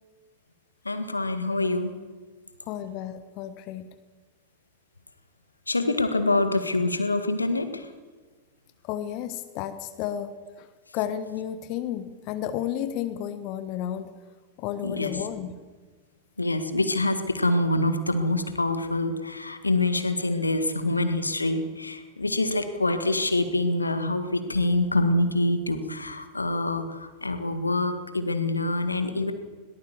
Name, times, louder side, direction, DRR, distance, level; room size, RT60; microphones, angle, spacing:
voice 1, 0.9-1.9 5.7-7.9 14.8-15.1 16.4-29.3, left 2 dB, 80° left, 9 dB, 1.8 m, -25 dB
voice 2, 2.7-3.9 8.8-10.7 10.9-14.1 14.6-15.6, left 10 dB, 40° left, 11 dB, 1.3 m, -32 dB
22.0 x 18.5 x 7.3 m, 1.4 s
figure-of-eight pair, 90°, 0 cm